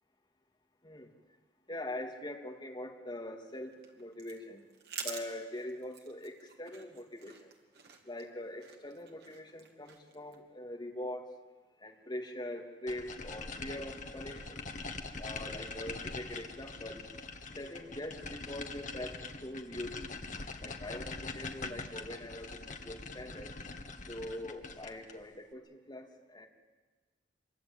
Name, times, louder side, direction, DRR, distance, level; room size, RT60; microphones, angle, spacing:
voice 1, 1.7-4.7 5.0-7.5 8.0-11.3 11.8-14.6 15.2-17.0 17.6-20.1 20.6-23.5 24.1-26.5, left 1 dB, 25° left, 1 dB, 2.6 m, -43 dB
sound 1, 3.5-10.4, right 6 dB, 60° right, 2.7 m, -49 dB
sound 2, 12.9-25.2, left 3 dB, 45° left, 1.6 m, -43 dB
25.5 x 23.0 x 8.9 m, 1.3 s
head